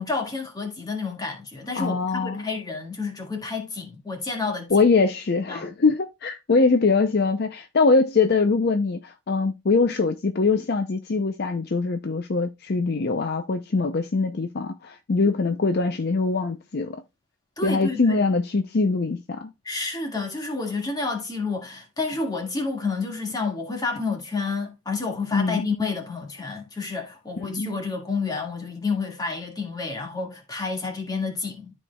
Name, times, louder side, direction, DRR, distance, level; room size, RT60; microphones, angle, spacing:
voice 1, 0.0-4.7 5.5-5.7 17.6-18.2 19.6-31.7, left 4 dB, 20° left, 1.8 m, -29 dB
voice 2, 1.8-2.4 4.7-17.0 17.6-19.5 25.3-25.7 27.4-27.8, left 4 dB, 50° left, 0.5 m, -23 dB
13.0 x 4.4 x 2.2 m
head